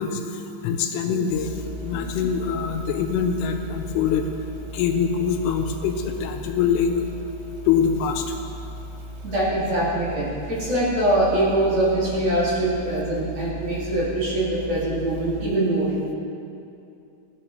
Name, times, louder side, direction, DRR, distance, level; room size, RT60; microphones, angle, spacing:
voice 1, 0.0-4.3 4.7-7.0 7.7-8.4, left 7 dB, 85° left, 5 dB, 3.1 m, -24 dB
sound 1, 1.3-15.5, equal, 90° right, 3.2 m, -37 dB
voice 2, 9.2-15.9, right 1 dB, 55° right, -9 dB, 1.9 m, -23 dB
15.0 x 6.4 x 3.1 m, 2.6 s
omnidirectional pair, 5.6 m